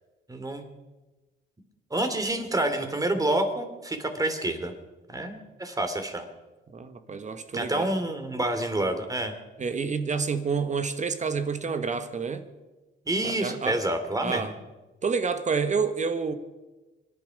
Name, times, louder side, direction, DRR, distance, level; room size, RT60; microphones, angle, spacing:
voice 1, 0.3-0.6 1.9-4.7 5.1-6.2 7.5-9.3 13.1-14.5, right 1 dB, 15° right, 7 dB, 2.7 m, -28 dB
voice 2, 6.7-7.9 9.6-12.4 13.2-13.8 14.2-14.5 15.0-16.3, right 5 dB, 35° right, 9 dB, 1.3 m, -28 dB
25.0 x 11.0 x 5.2 m, 1.1 s
cardioid pair, 90°, 20 cm